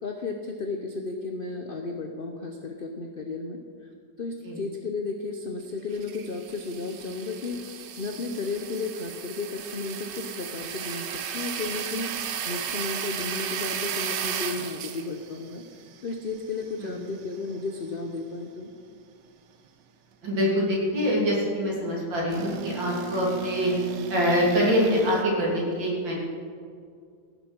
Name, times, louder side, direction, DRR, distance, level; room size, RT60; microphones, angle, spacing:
voice 1, 0.0-3.6 4.2-15.6 16.0-18.7, left 3 dB, 50° left, 4 dB, 0.6 m, -33 dB
sound 1, 5.9-17.7 18.1-18.2 22.3-25.2, right 8 dB, 70° right, 1.5 m, -35 dB
voice 2, 20.2-23.7 24.1-26.1, equal, 90° right, -3 dB, 3.6 m, -24 dB
15.5 x 7.5 x 6.2 m, 2.2 s
omnidirectional pair, 2.0 m